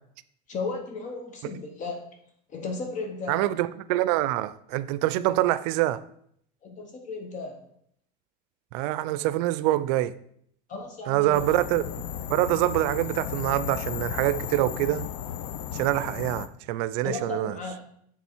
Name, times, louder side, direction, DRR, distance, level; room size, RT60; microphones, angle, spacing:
voice 1, 0.5-2.1 2.5-3.5 6.6-7.6 10.7-11.4 17.0-17.8, left 3 dB, 40° left, 1.0 m, -35 dB
voice 2, 3.3-6.0 8.7-10.1 11.1-11.9 12.3-15.1 15.7-17.6, right 15 dB, 75° right, 0.4 m, -25 dB
sound 1, 11.3-16.5, left 9 dB, 85° left, 0.5 m, -34 dB
7.1 x 3.7 x 4.4 m
cardioid pair, 140°, 20 cm